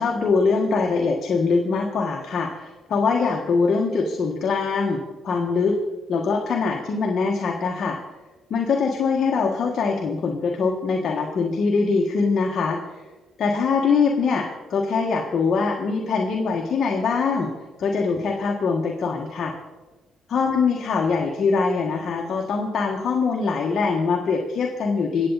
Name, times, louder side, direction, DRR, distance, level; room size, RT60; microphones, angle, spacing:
voice 1, 0.0-5.8 6.1-8.0 8.5-12.9 13.4-17.5 17.8-19.5 20.3-25.3, left 4 dB, 60° left, 1 dB, 1.5 m, -23 dB
23.0 x 8.3 x 4.1 m, 1.2 s
cardioid pair, 90°, 0 cm